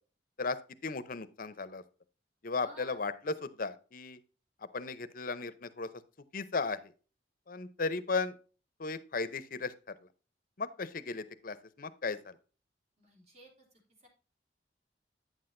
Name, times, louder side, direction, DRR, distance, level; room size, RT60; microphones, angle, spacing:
voice 1, 0.8-1.8 2.4-4.2 4.7-5.9 6.3-6.9 7.5-8.4 8.8-9.7 10.6-12.3, left 4 dB, 50° left, 13 dB, 0.7 m, -35 dB
voice 2, 2.5-3.0 13.0-13.7 14.0-14.1, right 1 dB, 40° right, 0 dB, 3.4 m, -54 dB
9.3 x 7.7 x 2.6 m, 0.36 s
head